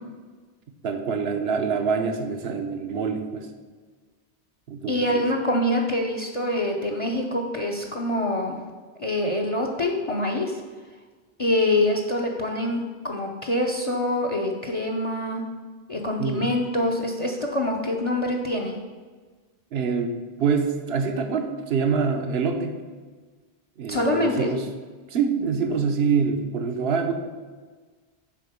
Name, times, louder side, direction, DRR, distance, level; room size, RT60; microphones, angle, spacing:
voice 1, 0.8-3.5 4.7-5.2 16.2-16.5 19.7-20.1 20.4-22.7 23.8-24.6 25.1-27.1, right 5 dB, 75° right, 5 dB, 1.1 m, -25 dB
voice 2, 4.9-8.6 9.0-10.6 11.4-15.4 15.9-18.8 23.9-24.5, left 1 dB, 35° left, 2 dB, 0.7 m, -25 dB
7.6 x 4.5 x 6.6 m, 1.4 s
omnidirectional pair, 1.0 m